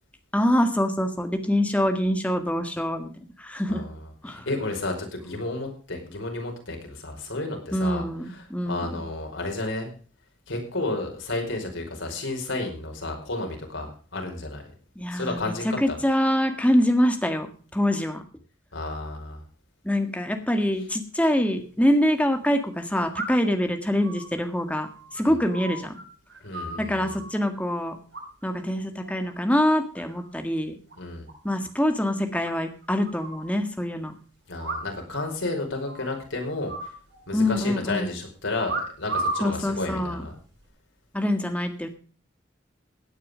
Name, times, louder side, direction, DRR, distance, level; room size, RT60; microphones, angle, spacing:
voice 1, 0.3-3.9 4.2-4.5 7.7-8.9 14.9-18.2 19.8-26.0 26.8-28.0 28.4-30.8 31.4-34.1 37.3-38.1 39.4-40.2 41.1-41.9, equal, 5° left, 6 dB, 1.7 m, -25 dB
voice 2, 3.7-9.9 10.5-14.6 15.1-16.0 18.7-19.4 25.2-25.4 26.4-27.2 31.0-31.3 34.5-36.9 37.3-40.3, left 2 dB, 85° left, 2 dB, 5.1 m, -32 dB
sound 1, 23.1-23.6 24.0-26.0 26.3-27.3 28.1-28.6 28.9-29.3 29.7-30.3 30.6-30.7 30.9-31.0 31.3-31.4 31.7-31.8 32.4-33.5 34.6-35.2 35.4-35.5 35.8-36.2 36.7-37.6 38.6-39.5 40.3-40.6, right 2 dB, 65° right, 7.0 m, -34 dB
17.0 x 9.1 x 5.1 m, 0.40 s
head